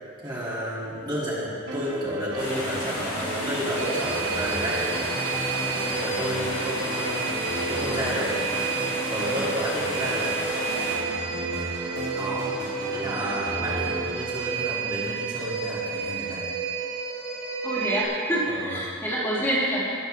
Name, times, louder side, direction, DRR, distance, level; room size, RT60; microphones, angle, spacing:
voice 1, 0.2-5.1 5.8-7.3 7.7-8.3 9.1-10.3 12.1-12.5 12.9-16.5 18.5-18.7, equal, 25° right, -8 dB, 2.8 m, -31 dB
sound 1, 1.7-15.2, right 1 dB, 60° right, 2.3 m, -35 dB
sound 2, 2.4-11.0, left 1 dB, 30° left, 3.1 m, -33 dB
sound 3, 3.8-18.0, right 6 dB, 80° right, 2.0 m, -31 dB
voice 2, 17.6-19.9, equal, 10° left, -9 dB, 2.7 m, -26 dB
20.0 x 8.0 x 3.5 m, 2.4 s
head